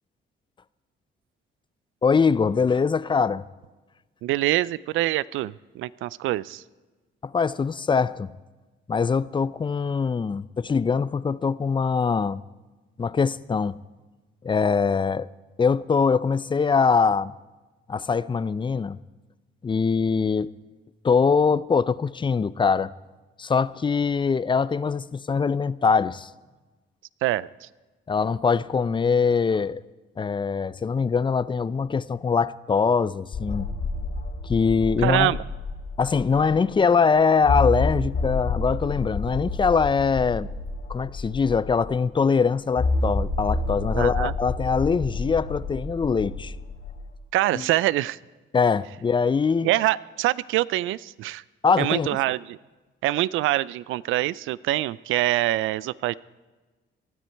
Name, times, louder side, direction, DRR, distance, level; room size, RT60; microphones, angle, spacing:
voice 1, 2.0-3.4 7.2-8.3 8.9-12.4 13.0-13.8 14.4-15.3 15.6-17.3 17.9-19.0 19.6-20.5 21.0-22.9 23.4-26.3 28.1-29.8 30.2-33.7 34.4-35.3 36.0-40.5 40.9-46.5 47.5-47.6 48.5-49.7 51.6-52.2, left 5 dB, 25° left, 0.5 m, -23 dB
voice 2, 4.2-6.6 27.2-27.7 35.0-35.4 43.9-44.3 47.3-48.2 49.6-51.4 51.8-52.6 53.0-56.1, right 15 dB, 85° right, 0.4 m, -25 dB
sound 1, 33.3-36.6 36.9-37.0 37.4-42.0 42.8-47.1, left 3 dB, 55° left, 2.7 m, -29 dB
19.0 x 13.0 x 4.5 m
cardioid pair, 90°, 20 cm